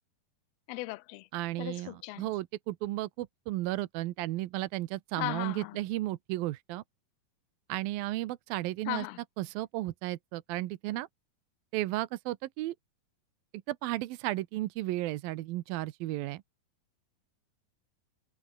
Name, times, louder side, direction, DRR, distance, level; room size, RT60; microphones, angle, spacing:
voice 1, 0.7-1.3 1.6-2.3 5.2-5.8 8.9-9.2, left 20 dB, 85° left, 2.6 m, -37 dB
voice 2, 1.3-6.8 7.7-9.1 9.4-11.1 11.7-12.8 13.7-16.4, right 16 dB, 80° right, 2.6 m, -34 dB
omnidirectional pair, 4.3 m